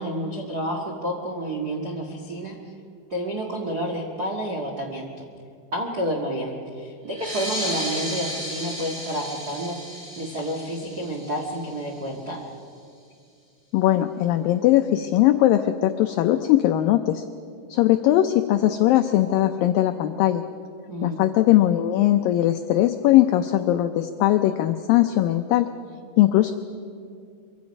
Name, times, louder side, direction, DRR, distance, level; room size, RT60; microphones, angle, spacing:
voice 1, 0.0-2.6 3.1-5.2 5.7-9.8 10.2-12.4 20.9-21.2, right 1 dB, 60° right, -1 dB, 0.9 m, -29 dB
sound 1, 7.1-12.2, equal, 15° right, 2.4 m, -34 dB
voice 2, 13.7-17.2 17.7-20.4 21.0-25.7 26.2-26.5, left 13 dB, 85° left, 8 dB, 2.0 m, -20 dB
24.5 x 24.0 x 5.3 m, 2.4 s
omnidirectional pair, 4.8 m